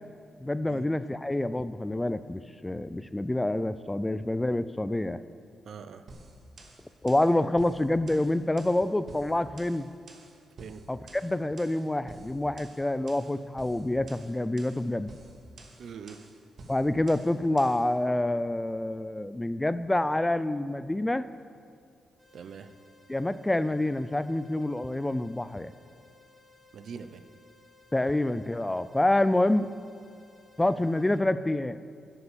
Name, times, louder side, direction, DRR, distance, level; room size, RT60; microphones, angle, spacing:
voice 1, 0.4-5.2 7.0-9.9 10.9-15.1 16.7-21.3 23.1-25.7 27.9-29.7 30.6-31.8, left 1 dB, 15° left, 14 dB, 0.3 m, -27 dB
voice 2, 5.7-6.0 10.6-10.8 15.8-16.2 22.3-22.7 26.7-27.2, right 6 dB, 70° right, 10 dB, 0.6 m, -42 dB
sound 1, 6.1-17.9, right 2 dB, 55° right, 1.6 m, -51 dB
sound 2, 22.2-31.2, left 3 dB, 10° right, 2.6 m, -59 dB
11.0 x 6.9 x 6.9 m, 2.3 s
cardioid pair, 85°, 0 cm